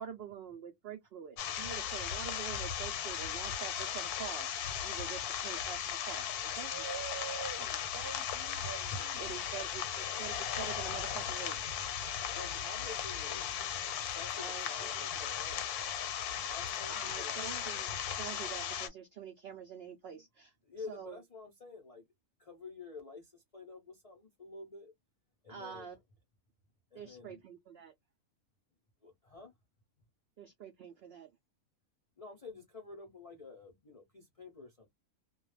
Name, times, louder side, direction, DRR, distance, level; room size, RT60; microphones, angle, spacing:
voice 1, 0.0-4.5 4.8-6.3 6.6-6.7 9.2-11.6 14.3-14.9 16.9-20.5 20.9-21.2 25.5-26.0 26.9-27.9 30.4-31.3, right 8 dB, 75° right, 0.5 m, -46 dB
sound 1, 1.4-18.9, left 9 dB, 85° left, 1.1 m, -37 dB
voice 2, 6.7-9.3, right 7 dB, 45° right, 0.8 m, -45 dB
voice 3, 9.2-9.5 12.3-13.6 14.1-15.7 16.4-17.5 20.7-22.1 22.4-24.9 25.4-26.0 26.9-27.4 29.0-29.5 32.2-34.9, left 4 dB, 55° left, 0.3 m, -49 dB
2.3 x 2.2 x 3.0 m
omnidirectional pair, 1.6 m